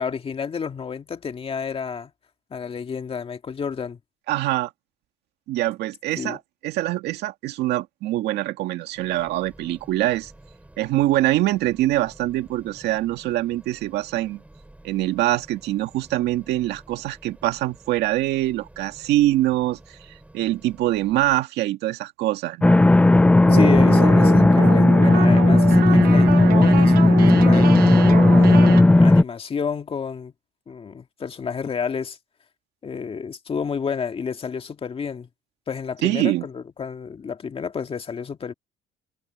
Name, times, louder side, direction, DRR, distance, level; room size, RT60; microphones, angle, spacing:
voice 1, 0.0-2.1 2.5-4.0 6.2-6.4 23.5-27.8 28.3-30.3 30.7-32.2 32.8-35.3 35.7-38.5, left 6 dB, 35° left, 2.0 m, -30 dB
voice 2, 4.3-4.7 5.5-10.3 10.8-14.4 14.8-22.8 36.0-36.5, right 15 dB, 80° right, 2.0 m, -24 dB
sound 1, 8.9-21.4, right 1 dB, 10° right, 6.2 m, -50 dB
sound 2, 22.6-29.2, left 2 dB, 10° left, 0.4 m, -14 dB
sound 3, 23.5-28.8, right 12 dB, 65° right, 1.3 m, -27 dB
cardioid pair, 110°, 17 cm